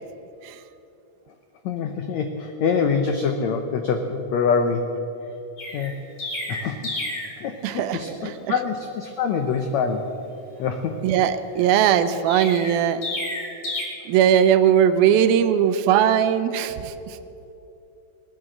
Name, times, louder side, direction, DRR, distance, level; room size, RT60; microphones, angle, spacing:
voice 1, 1.6-4.9 5.7-5.9 6.5-6.9 7.4-10.1 10.6-10.9, left 5 dB, 90° left, 6 dB, 1.5 m, -25 dB
Chirp tweet, 5.6-7.4 12.3-13.8, left 1 dB, 40° left, 4.6 m, -30 dB
voice 2, 7.6-8.6 11.0-13.0 14.1-17.2, right 9 dB, 80° right, 11 dB, 2.5 m, -19 dB
19.5 x 9.5 x 7.8 m, 2.9 s
omnidirectional pair, 4.3 m